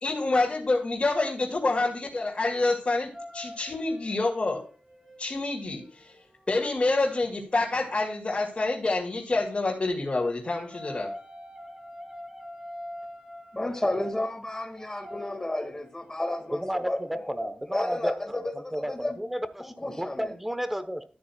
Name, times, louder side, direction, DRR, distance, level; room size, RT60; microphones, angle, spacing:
voice 1, 0.0-4.6 5.2-6.1 6.5-11.1, left 2 dB, 35° left, 2.2 m, -27 dB
sound 1, 3.1-7.9 9.1-18.9, left 1 dB, 20° right, 3.3 m, -46 dB
voice 2, 13.5-17.3 17.7-19.2 19.6-20.4, left 1 dB, 15° left, 2.0 m, -32 dB
voice 3, 16.5-18.4 18.7-21.0, equal, 5° right, 1.0 m, -32 dB
13.0 x 8.8 x 2.3 m
wide cardioid pair, 115°, 3 cm